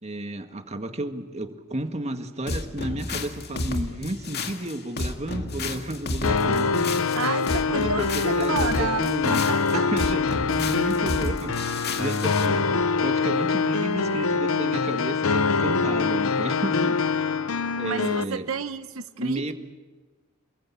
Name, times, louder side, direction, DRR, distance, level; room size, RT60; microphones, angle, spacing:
voice 1, 0.0-7.0 7.7-9.4 9.7-17.4 17.8-18.5 19.2-19.5, right 1 dB, 30° right, 6 dB, 1.9 m, -32 dB
sound 1, 2.5-12.5, left 2 dB, 50° left, 2.1 m, -31 dB
sound 2, 6.2-18.2, left 4 dB, 80° left, 0.9 m, -24 dB
voice 2, 7.1-9.9 17.8-19.5, right 5 dB, 75° right, 10 dB, 0.9 m, -31 dB
28.5 x 22.0 x 8.6 m, 1.3 s
head